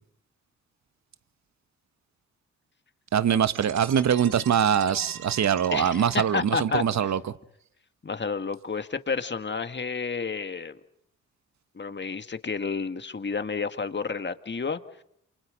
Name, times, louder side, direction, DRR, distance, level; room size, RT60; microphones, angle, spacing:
voice 1, 3.1-7.2, right 8 dB, 55° right, 1.3 m, -23 dB
sound 1, 3.5-7.0, right 8 dB, 80° right, 2.4 m, -42 dB
voice 2, 5.7-7.1 8.0-10.8 11.7-14.8, left 5 dB, 35° left, 1.9 m, -30 dB
29.5 x 28.0 x 5.2 m
supercardioid pair, 50°, 32 cm